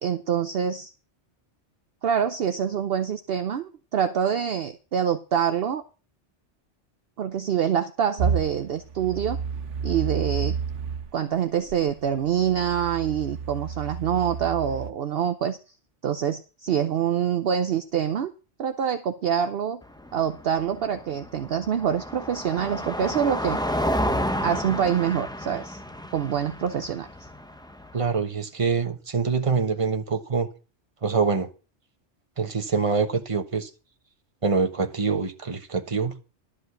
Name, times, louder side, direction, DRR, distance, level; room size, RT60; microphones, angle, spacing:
voice 1, 0.0-0.9 2.0-5.8 7.2-9.4 9.8-10.5 11.1-15.6 16.0-18.3 18.6-19.8 20.1-23.6 24.4-25.8 26.1-27.1, right 8 dB, 60° right, 0.8 m, -25 dB
sound 1, 8.2-11.1 11.7-14.9, right 6 dB, 80° right, 1.3 m, -30 dB
Car passing by, 19.8-28.1, equal, 5° left, 0.8 m, -31 dB
voice 2, 27.9-30.5 31.0-31.5 32.4-33.7 34.4-36.1, right 5 dB, 30° right, 1.1 m, -25 dB
12.0 x 5.2 x 8.0 m
omnidirectional pair, 1.2 m